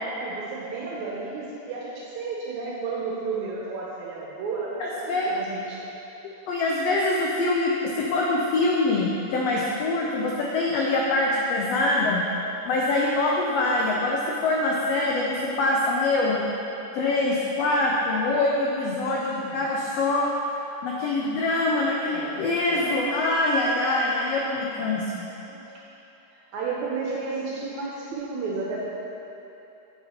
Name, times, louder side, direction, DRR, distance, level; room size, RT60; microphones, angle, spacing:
voice 1, 0.2-5.8 19.5-19.7 22.1-22.9 24.5-24.6 25.5-25.7 26.3-28.9, right 4 dB, 75° right, -4 dB, 2.0 m, -32 dB
voice 2, 4.8-5.3 6.2-7.7 8.0-12.2 12.6-16.4 16.9-20.3 20.8-25.2, left 2 dB, 85° left, -3 dB, 1.4 m, -24 dB
9.8 x 5.5 x 4.3 m, 3.0 s
omnidirectional pair, 3.7 m